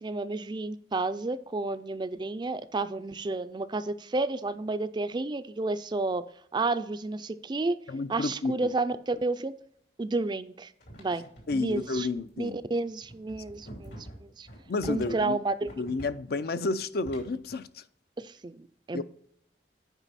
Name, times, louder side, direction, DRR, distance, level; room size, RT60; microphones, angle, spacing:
voice 1, 0.0-6.2 6.5-7.8 8.1-9.5 10.0-10.7 11.0-11.3 11.5-12.1 12.4-14.5 14.9-15.7 18.2-19.0, right 3 dB, 25° right, 0.4 m, -31 dB
voice 2, 7.9-8.6 11.5-12.6 14.7-15.4 15.8-17.8 18.9-19.0, left 3 dB, 60° left, 0.5 m, -31 dB
sound 1, 10.8-17.6, right 1 dB, 85° left, 3.0 m, -47 dB
9.0 x 5.2 x 4.1 m
head